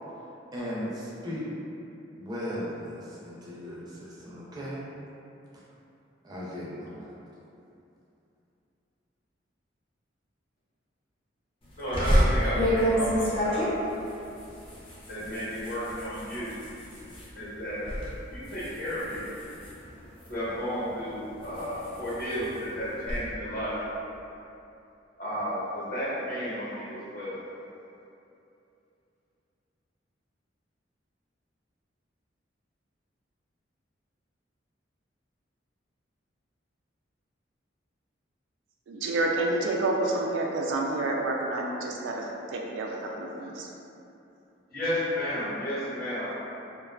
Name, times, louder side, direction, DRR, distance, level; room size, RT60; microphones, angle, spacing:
voice 1, 0.5-1.5 2.1-4.8 6.2-7.1, equal, 20° right, -7 dB, 0.4 m, -37 dB
voice 2, 11.7-13.7 15.1-16.6 17.3-17.8 18.3-19.4 20.3-23.7 25.2-27.4 44.7-46.3, equal, 55° left, -10 dB, 1.0 m, -32 dB
sound 1, 11.9-17.3 17.7-18.1 18.4-20.5 21.0-23.2, equal, 30° left, 0.5 m, -28 dB
voice 3, 38.9-43.7, right 2 dB, 90° right, 0 dB, 0.3 m, -29 dB
2.4 x 2.3 x 2.2 m, 2.8 s
head